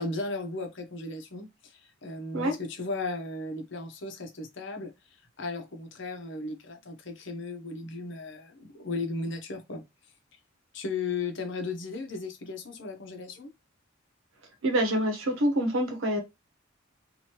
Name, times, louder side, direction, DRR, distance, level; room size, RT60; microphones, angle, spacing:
voice 1, 0.0-4.9 5.4-9.8 10.7-13.5, left 3 dB, 65° left, 0.8 m, -36 dB
voice 2, 14.6-16.2, right 1 dB, 80° right, 1.0 m, -26 dB
3.0 x 2.6 x 2.9 m
head